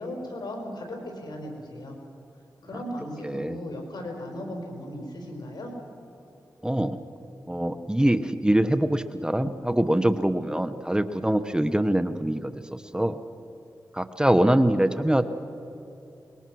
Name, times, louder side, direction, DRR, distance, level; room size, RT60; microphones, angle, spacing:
voice 1, 0.0-2.0 2.6-5.7, left 1 dB, 75° left, 2 dB, 5.1 m, -36 dB
voice 2, 3.2-3.6 6.6-7.0 7.5-13.2 13.9-15.2, right 1 dB, 10° right, 10 dB, 1.0 m, -24 dB
24.5 x 22.0 x 6.3 m, 2.9 s
cardioid pair, 60°, 7 cm